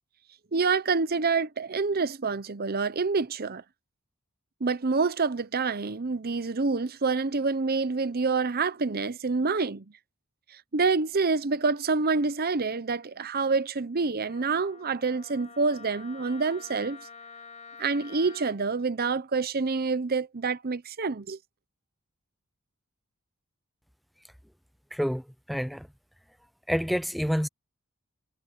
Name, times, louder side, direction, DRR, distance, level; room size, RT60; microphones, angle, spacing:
voice 1, 0.5-3.6 4.6-9.8 10.7-17.0 17.8-21.4, right 4 dB, 45° right, 0.8 m, -27 dB
Wind instrument woodwind instrument, 14.3-18.6, left 5 dB, 30° left, 6.0 m, -48 dB
Harp, 18.1-20.0, right 7 dB, 75° right, 6.3 m, -63 dB
voice 2, 24.9-25.9 26.7-27.5, equal, ahead, 0.4 m, -28 dB
head